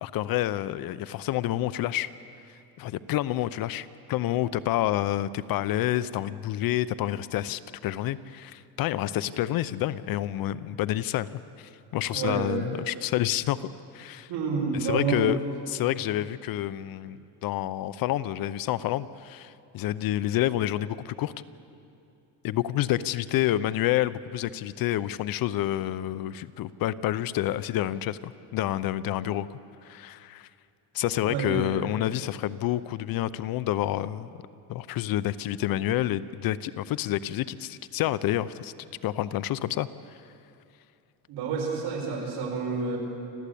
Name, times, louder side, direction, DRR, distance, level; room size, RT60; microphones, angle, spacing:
voice 1, 0.0-2.1 2.8-11.3 11.6-13.7 13.9-14.3 14.8-15.4 15.7-21.3 22.4-29.6 29.8-30.5 30.9-34.3 34.7-38.7 39.0-39.9, left 13 dB, 55° left, 16 dB, 0.7 m, -28 dB
voice 2, 12.1-12.6 14.3-15.3 31.2-31.7 41.3-43.0, right 5 dB, 65° right, -1 dB, 6.2 m, -29 dB
27.0 x 15.0 x 8.5 m, 2.6 s
cardioid pair, 140°, 42 cm